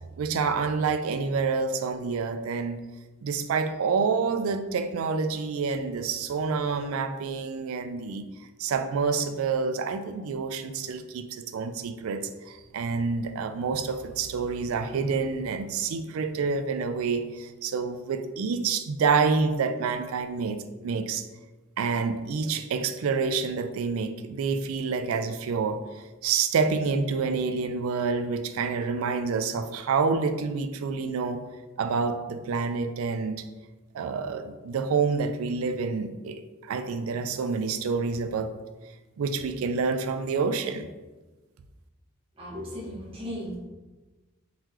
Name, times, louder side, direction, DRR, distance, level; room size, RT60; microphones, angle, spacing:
voice 1, 0.2-2.8 3.2-8.3 8.6-20.6 20.8-21.3 21.8-31.4 31.8-33.4 33.9-38.5 39.2-40.9, right 5 dB, 85° right, 9 dB, 0.4 m, -28 dB
voice 2, 42.4-43.6, equal, 25° right, -6 dB, 0.9 m, -36 dB
3.8 x 3.1 x 2.9 m, 1.2 s
head